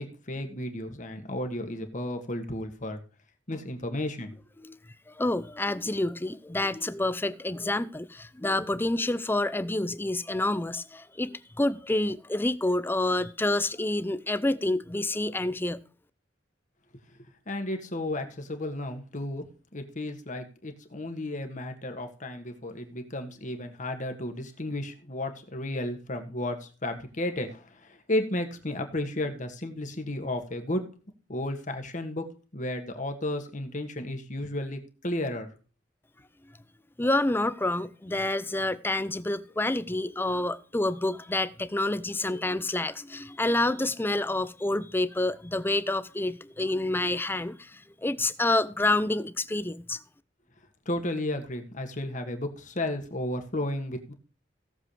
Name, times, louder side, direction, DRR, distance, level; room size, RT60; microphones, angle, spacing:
voice 1, 0.0-3.0 3.5-4.4 17.1-17.2 17.5-19.5 19.7-30.8 31.3-32.3 32.5-35.5 50.8-54.1, left 1 dB, 45° left, 1.7 m, -33 dB
voice 2, 5.1-15.8 37.0-50.0, left 2 dB, 10° left, 0.5 m, -28 dB
17.0 x 7.3 x 3.3 m
head